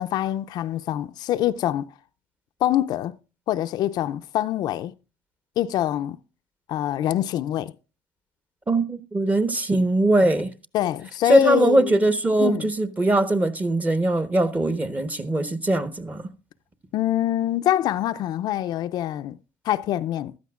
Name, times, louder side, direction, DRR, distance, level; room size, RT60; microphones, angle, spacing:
voice 1, 0.0-1.9 2.6-3.2 3.5-4.9 5.6-6.2 6.7-7.7 10.7-12.0 12.4-12.7 16.9-19.4 19.6-20.3, left 12 dB, 60° left, 0.5 m, -25 dB
voice 2, 8.7-10.5 11.3-16.2, right 1 dB, 20° right, 1.1 m, -21 dB
14.5 x 12.5 x 2.4 m
supercardioid pair, 85°, 8 cm